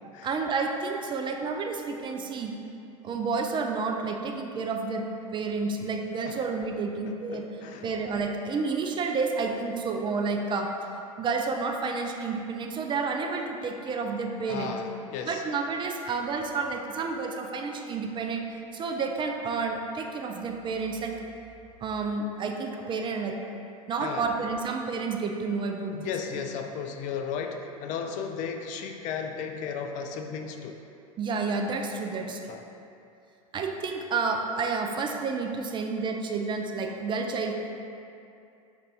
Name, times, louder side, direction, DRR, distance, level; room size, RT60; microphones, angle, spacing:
voice 1, 0.2-2.5 3.0-5.0 5.3-7.5 7.8-10.7 11.2-14.8 15.3-18.5 18.7-21.1 21.8-23.4 23.9-26.4 31.2-32.4 33.5-37.8, right 4 dB, 25° right, 3 dB, 0.4 m, -30 dB
voice 2, 7.3-7.9 14.5-15.4 24.0-24.3 25.9-30.8 32.5-32.6, left 6 dB, 45° left, 5 dB, 0.4 m, -35 dB
5.2 x 2.7 x 3.4 m, 2.6 s
hypercardioid pair, 85°, 18 cm